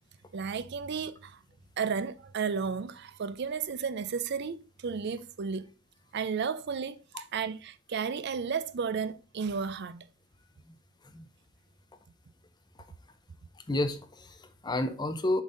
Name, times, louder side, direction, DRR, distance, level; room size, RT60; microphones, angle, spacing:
voice 1, 0.3-1.4 1.8-5.7 6.1-10.0, right 6 dB, 50° right, 0.4 m, -33 dB
voice 2, 13.7-15.4, left 1 dB, 20° left, 0.6 m, -31 dB
7.1 x 4.1 x 3.7 m
head